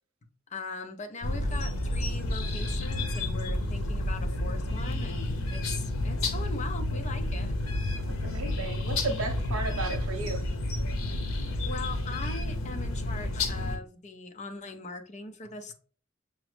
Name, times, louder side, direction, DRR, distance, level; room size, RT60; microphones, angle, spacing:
voice 1, 0.5-7.5 11.7-15.7, left 3 dB, 35° left, 0.5 m, -40 dB
sound 1, 1.2-13.8, left 1 dB, 90° left, 0.7 m, -30 dB
voice 2, 8.1-10.4, right 3 dB, 80° right, 0.8 m, -34 dB
6.0 x 2.0 x 3.1 m
head